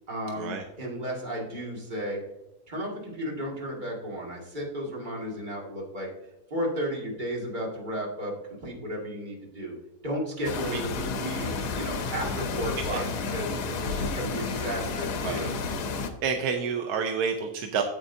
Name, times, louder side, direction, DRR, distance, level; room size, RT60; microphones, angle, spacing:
voice 1, 0.1-2.2 2.7-6.1 6.5-9.7 10.0-13.0 13.3-13.5 13.9-15.5, equal, 30° right, -3 dB, 2.2 m, -33 dB
sound 1, 10.4-16.1, left 4 dB, 75° left, 1.4 m, -31 dB
voice 2, 16.2-17.8, right 6 dB, 75° right, 4 dB, 1.2 m, -29 dB
9.2 x 7.9 x 2.7 m, 0.93 s
omnidirectional pair, 1.7 m